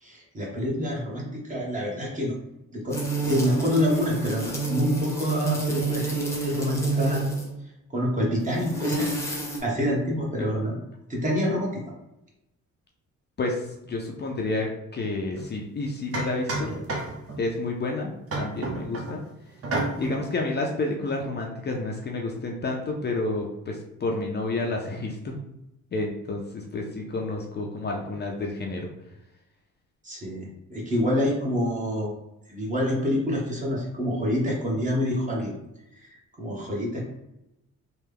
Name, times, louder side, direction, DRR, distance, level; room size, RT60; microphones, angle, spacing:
voice 1, 0.0-2.3 2.7-7.2 7.9-10.8 11.1-11.7 16.7-16.8 30.0-32.1 32.5-35.5 35.9-37.0, equal, 25° right, -3 dB, 1.2 m, -27 dB
sound 1, 2.9-7.5 8.4-9.6, right 3 dB, 10° left, 0.9 m, -29 dB
voice 2, 13.4-16.7 17.4-19.2 20.0-25.3 25.9-28.9, left 2 dB, 35° left, 0 dB, 0.5 m, -30 dB
sound 2, 15.4-15.5 16.1-17.4 18.3-19.2 19.6-20.2, right 2 dB, 50° right, 0.9 m, -30 dB
3.3 x 2.2 x 3.4 m, 0.86 s
cardioid pair, 90°, 30 cm